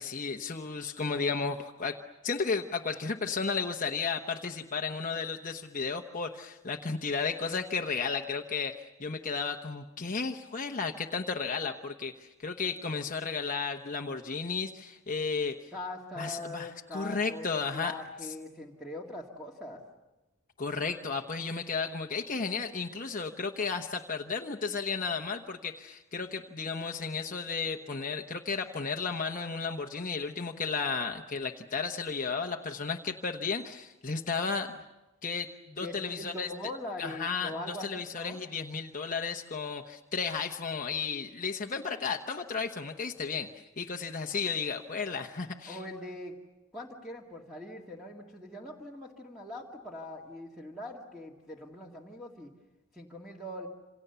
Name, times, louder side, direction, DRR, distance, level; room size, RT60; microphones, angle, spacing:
voice 1, 0.0-15.7 16.2-17.9 18.2-18.3 20.6-34.8 35.2-36.5 37.0-45.8, left 5 dB, 35° left, 3 dB, 1.0 m, -33 dB
voice 2, 15.7-19.8 35.7-38.4 45.6-46.3 46.7-52.5 52.9-53.7, left 1 dB, ahead, -2 dB, 2.1 m, -42 dB
27.5 x 27.5 x 6.9 m, 1.1 s
head